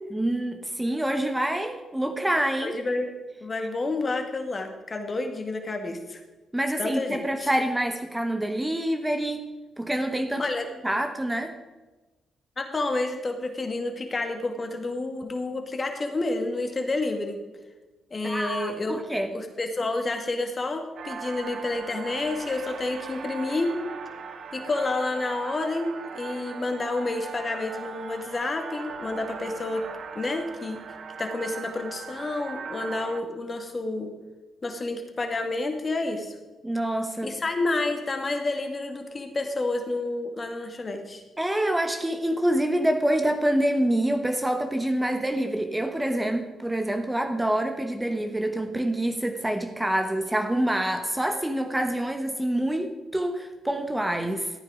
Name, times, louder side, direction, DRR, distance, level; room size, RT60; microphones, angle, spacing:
voice 1, 0.1-2.8 6.5-9.5 9.8-10.5 10.8-11.5 18.2-19.3 36.6-37.3 41.4-54.5, right 1 dB, 10° right, 7 dB, 1.2 m, -26 dB
voice 2, 2.6-3.1 3.4-6.2 6.8-7.5 10.4-10.7 12.6-17.4 18.1-19.0 19.3-23.8 24.5-29.8 30.2-30.8 31.2-34.1 34.6-36.4 37.2-41.2, left 2 dB, 40° left, 5 dB, 2.1 m, -29 dB
sound 1, 21.0-33.2, right 5 dB, 65° right, 0.9 m, -39 dB
14.0 x 8.9 x 5.0 m, 1.2 s
hypercardioid pair, 45°, 0 cm